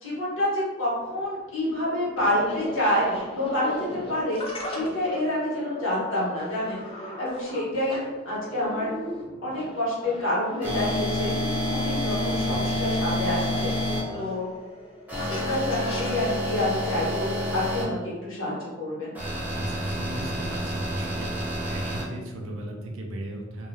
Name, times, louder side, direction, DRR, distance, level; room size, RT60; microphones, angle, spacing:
voice 1, 0.0-4.4 4.6-8.0 8.2-8.9 9.4-11.3 11.7-13.7 14.1-14.5 15.3-19.1, left 1 dB, 80° left, -7 dB, 1.2 m, -28 dB
sound 1, 1.0-17.6, left 1 dB, 30° left, 0.4 m, -38 dB
sound 2, 10.6-14.0 15.1-17.8 19.2-22.0, left 1 dB, 10° right, 0.6 m, -29 dB
voice 2, 19.5-21.3 21.7-23.7, right 1 dB, 85° right, 2 dB, 0.5 m, -37 dB
2.3 x 2.3 x 3.1 m, 1.3 s
head